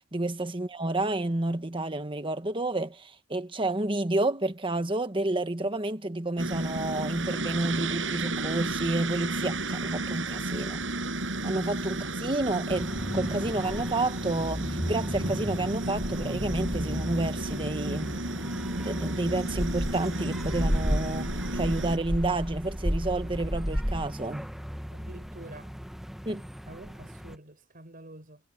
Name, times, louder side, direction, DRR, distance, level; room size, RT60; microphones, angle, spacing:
voice 1, 0.0-10.9 11.4-18.1 18.8-24.5 26.2-26.4, right 2 dB, 25° right, 1.4 m, -30 dB
sound 1, 6.4-22.0, right 2 dB, 75° right, 7.9 m, -33 dB
sound 2, 12.7-27.4, equal, ahead, 1.3 m, -34 dB
voice 2, 24.9-25.8 26.7-28.4, right 1 dB, 50° right, 5.9 m, -47 dB
head